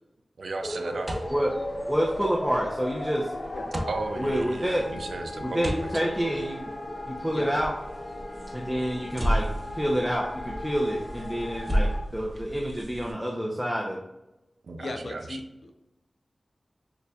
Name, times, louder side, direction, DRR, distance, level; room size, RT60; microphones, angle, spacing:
voice 1, 0.4-1.1 3.9-6.1 14.6-15.4, right 3 dB, 85° right, 5 dB, 0.4 m, -35 dB
sound 1, 0.6-12.0, left 1 dB, 45° left, 0.9 m, -37 dB
sound 2, 1.0-13.1, equal, 35° right, 1.1 m, -34 dB
voice 2, 1.9-3.3 4.2-4.9 5.4-6.6 7.1-7.7 8.5-9.5 9.7-11.9 12.1-14.0, equal, 5° right, -2 dB, 0.7 m, -28 dB
voice 3, 14.8-15.8, left 2 dB, 75° left, 5 dB, 0.6 m, -37 dB
6.6 x 2.4 x 2.4 m, 0.95 s
cardioid pair, 40°, 0 cm